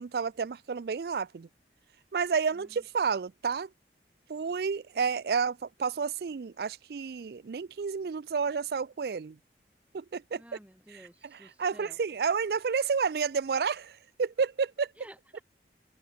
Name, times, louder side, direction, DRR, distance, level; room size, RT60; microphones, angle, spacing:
voice 1, 0.0-1.5 2.1-3.7 4.3-9.4 9.9-10.4 10.9-14.9, right 5 dB, 60° right, 0.4 m, -30 dB
voice 2, 2.5-2.8 10.3-12.0 15.0-15.4, equal, 10° right, 4.4 m, -53 dB
open air
head